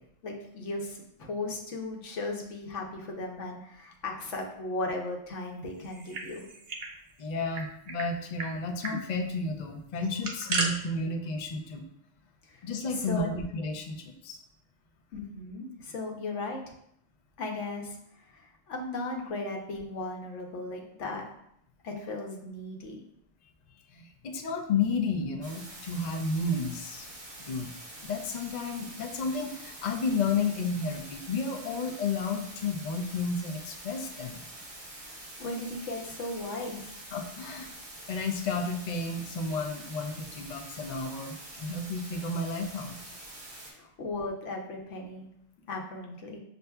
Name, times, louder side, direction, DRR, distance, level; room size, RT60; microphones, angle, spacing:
voice 1, 0.2-6.4 12.4-13.3 15.1-16.6 17.4-18.0 18.2-21.3 21.8-23.0 35.0-37.0 43.7-45.3 45.7-46.4, left 2 dB, 80° left, 1 dB, 1.1 m, -36 dB
sound 1, 5.8-6.9 7.2-7.3 7.5-8.1 8.4-8.5 8.8-9.0 10.0-10.7, right 3 dB, 55° right, 0.7 m, -33 dB
voice 2, 7.2-11.9 12.6-14.4 23.9-27.1 27.4-27.7 28.0-34.4 37.1-37.7 38.1-43.0, left 3 dB, 60° left, 4 dB, 0.4 m, -32 dB
sound 2, 25.4-43.7, right 1 dB, 30° right, 1.0 m, -46 dB
6.6 x 2.6 x 2.2 m, 0.74 s
omnidirectional pair, 1.2 m